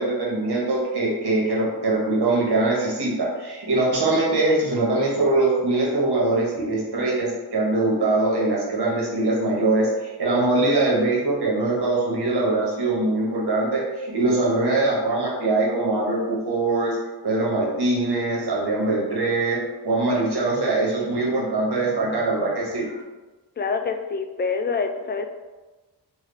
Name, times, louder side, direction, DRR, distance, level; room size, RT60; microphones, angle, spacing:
voice 1, 0.0-17.0 17.2-19.6 19.8-22.9, right 2 dB, 70° right, -4 dB, 1.3 m, -22 dB
voice 2, 23.6-25.3, left 5 dB, 25° left, 6 dB, 0.3 m, -26 dB
3.5 x 2.3 x 3.3 m, 1.2 s
cardioid pair, 55°, 41 cm